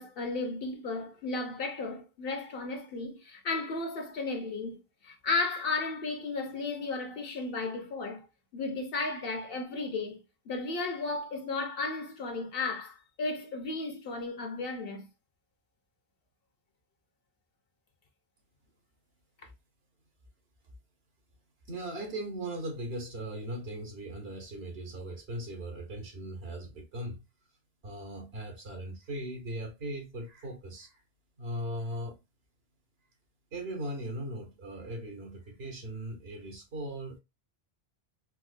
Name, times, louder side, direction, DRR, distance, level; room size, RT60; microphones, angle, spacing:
voice 1, 0.0-8.3 8.5-10.2 10.5-15.1, left 3 dB, 70° left, 1.0 m, -34 dB
voice 2, 21.7-27.2 27.8-31.0 31.4-32.2 33.5-37.2, right 1 dB, 80° right, 1.4 m, -38 dB
4.4 x 2.2 x 2.5 m
omnidirectional pair, 1.0 m